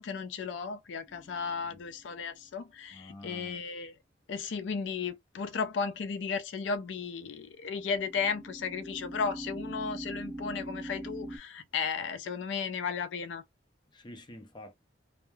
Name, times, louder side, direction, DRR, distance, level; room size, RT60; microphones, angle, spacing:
voice 1, 0.0-3.9 4.3-13.4, left 5 dB, 85° left, 0.4 m, -34 dB
sound 1, 1.1-1.8 7.8-11.4, right 1 dB, 5° right, 0.9 m, -42 dB
voice 2, 2.9-3.6 13.9-14.7, left 1 dB, 25° left, 0.5 m, -48 dB
3.0 x 2.1 x 2.2 m
head